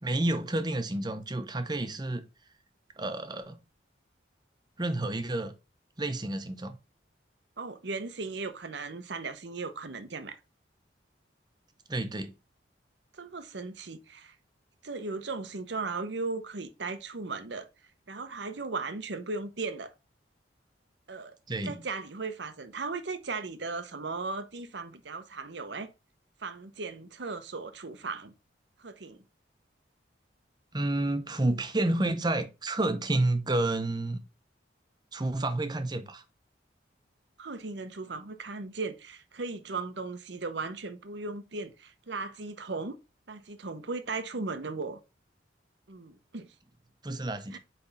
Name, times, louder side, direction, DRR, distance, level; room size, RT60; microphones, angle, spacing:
voice 1, 0.0-2.2 3.0-3.6 4.8-5.5 6.0-6.8 11.9-12.3 21.5-21.8 30.7-34.2 35.1-36.2 47.0-47.6, right 2 dB, 20° right, 0.8 m, -30 dB
voice 2, 7.6-10.4 13.2-14.3 14.8-17.7 18.1-19.9 21.1-21.3 21.6-25.9 26.4-28.3 28.8-29.2 37.4-43.0 43.3-45.0 45.9-46.5 47.5-47.6, right 3 dB, 70° right, 0.8 m, -37 dB
8.3 x 3.4 x 4.0 m
head